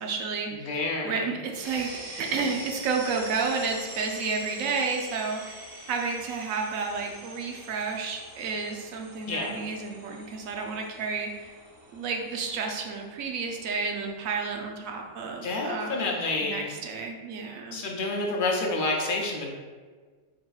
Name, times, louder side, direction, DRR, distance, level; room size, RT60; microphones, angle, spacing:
voice 1, 0.0-0.8 1.0-5.6 5.9-11.5 11.9-16.1 16.4-17.8, right 4 dB, 85° right, 2 dB, 1.0 m, -31 dB
voice 2, 0.5-1.3 9.3-9.5 15.4-16.7 17.7-19.5, left 2 dB, 55° left, 0 dB, 0.6 m, -29 dB
sound 1, 1.6-15.3, right 1 dB, 70° right, 1.4 m, -45 dB
4.2 x 3.8 x 2.3 m, 1.5 s
omnidirectional pair, 1.4 m